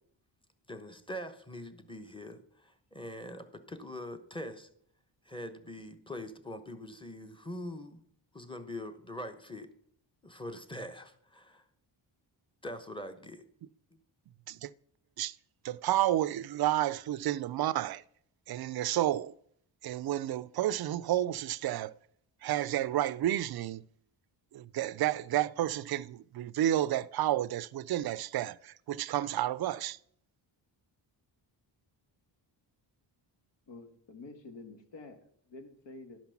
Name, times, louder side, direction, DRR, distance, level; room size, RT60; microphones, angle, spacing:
voice 1, 0.7-4.7 5.2-8.0 8.3-9.7 10.2-11.6 12.6-13.4, left 1 dB, 10° left, 1.1 m, -43 dB
voice 2, 15.6-18.0 18.5-19.3 19.8-21.9 22.4-23.9 24.5-30.0, right 13 dB, 55° right, 0.5 m, -31 dB
voice 3, 33.7-36.2, left 3 dB, 70° left, 1.7 m, -49 dB
11.5 x 5.9 x 5.8 m
cardioid pair, 100°, 45 cm